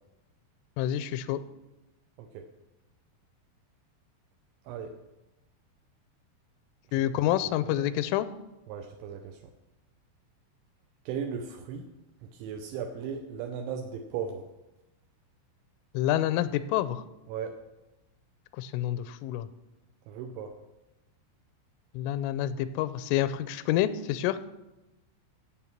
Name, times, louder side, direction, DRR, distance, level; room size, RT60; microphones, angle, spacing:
voice 1, 0.8-1.4 6.9-8.3 15.9-17.0 18.6-19.5 21.9-24.4, left 12 dB, 90° left, 13 dB, 3.1 m, -28 dB
voice 2, 8.7-9.4 11.1-11.9 12.2-14.4 17.3-17.6 20.1-20.6, right 7 dB, 80° right, 5 dB, 3.0 m, -37 dB
13.5 x 7.9 x 5.8 m, 1.0 s
omnidirectional pair, 5.6 m